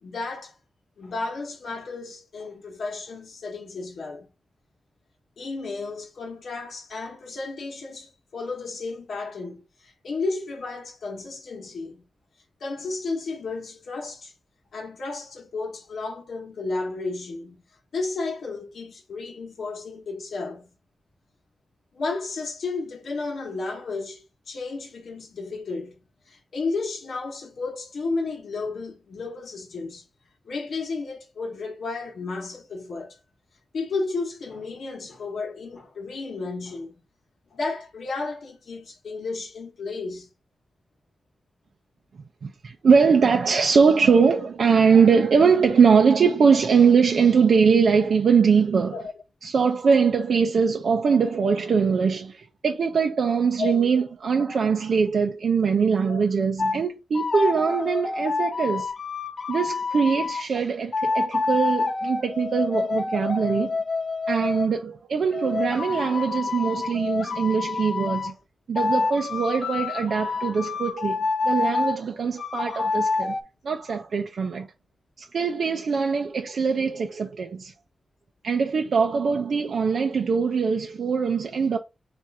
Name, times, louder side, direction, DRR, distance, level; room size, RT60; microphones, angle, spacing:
voice 1, 0.0-0.6 1.0-4.3 5.4-12.1 12.6-14.3 14.7-17.6 17.9-20.7 21.9-26.0 26.3-30.1 30.5-33.2 33.7-37.0 37.5-40.3 48.9-49.1 53.6-53.7 54.5-54.6 56.1-56.2 62.1-62.2, left 3 dB, 80° left, 1.0 m, -33 dB
voice 2, 42.4-49.0 49.4-58.9 59.5-63.8 64.3-68.3 68.7-71.2 71.4-73.4 73.6-74.7 75.2-77.7 78.4-81.8, right 5 dB, 75° right, 0.5 m, -22 dB
sound 1, 56.6-56.8 57.2-60.5 60.9-64.7 65.3-68.3 68.8-72.0 72.4-73.4, left 4 dB, 50° left, 0.4 m, -27 dB
4.3 x 2.5 x 4.6 m
wide cardioid pair, 120°, 0 cm